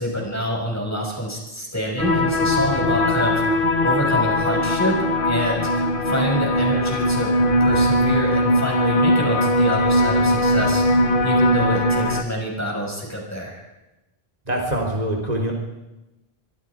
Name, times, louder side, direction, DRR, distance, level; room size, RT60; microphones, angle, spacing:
voice 1, 0.0-7.3 7.6-13.6, equal, 15° left, -1 dB, 6.3 m, -26 dB
sound 1, 2.0-12.2, left 1 dB, 55° left, 1.4 m, -20 dB
voice 2, 14.5-15.5, right 1 dB, 40° right, 0 dB, 3.6 m, -24 dB
25.5 x 24.0 x 5.0 m, 1.0 s
omnidirectional pair, 1.0 m